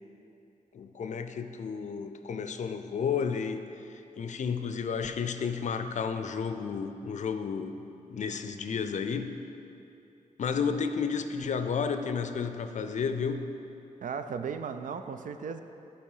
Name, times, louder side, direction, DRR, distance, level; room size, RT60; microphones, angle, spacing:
voice 1, 0.7-3.6 4.2-7.8 8.1-9.3 10.4-13.5, left 6 dB, 65° left, 9 dB, 0.4 m, -32 dB
voice 2, 14.0-15.6, right 6 dB, 80° right, 9 dB, 0.4 m, -36 dB
11.5 x 4.3 x 5.5 m, 2.8 s
wide cardioid pair, 170°, 13 cm